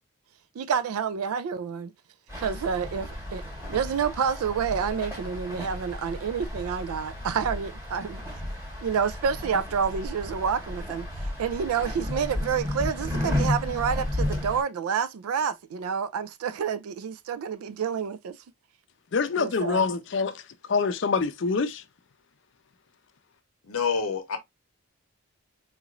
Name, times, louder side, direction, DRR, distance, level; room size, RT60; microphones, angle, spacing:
voice 1, 0.6-1.9 2.4-3.4 3.7-8.4 8.8-18.4 19.4-19.8, right 6 dB, 85° right, 0.3 m, -29 dB
sound 1, 2.3-14.6, left 1 dB, 10° right, 1.4 m, -33 dB
voice 2, 19.1-20.4 20.7-21.8, left 4 dB, 55° left, 0.5 m, -25 dB
voice 3, 23.7-24.4, left 5 dB, 85° left, 0.8 m, -27 dB
3.9 x 2.9 x 2.4 m
head